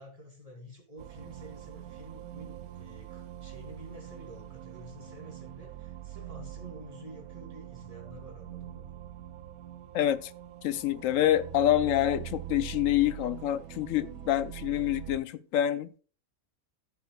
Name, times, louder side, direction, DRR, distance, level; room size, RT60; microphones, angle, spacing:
voice 1, 0.0-8.9, right 1 dB, 25° right, 2.9 m, -49 dB
sound 1, 1.0-15.2, right 12 dB, 90° right, 1.1 m, -43 dB
voice 2, 9.9-10.3 10.6-15.9, left 12 dB, 70° left, 0.9 m, -27 dB
15.0 x 7.3 x 2.3 m
omnidirectional pair, 1.5 m